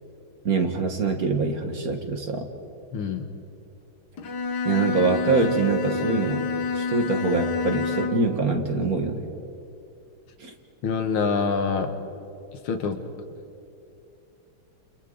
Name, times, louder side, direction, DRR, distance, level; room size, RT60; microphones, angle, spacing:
voice 1, 0.4-2.5 4.7-6.5 6.8-9.2 10.4-10.5, right 4 dB, 45° right, 4 dB, 1.9 m, -24 dB
voice 2, 2.9-3.3 10.8-11.9 12.6-13.0, left 5 dB, 85° left, 6 dB, 2.2 m, -25 dB
Bowed string instrument, 4.2-8.4, left 5 dB, 55° left, 1.7 m, -28 dB
29.5 x 29.0 x 4.0 m, 2.7 s
omnidirectional pair, 2.3 m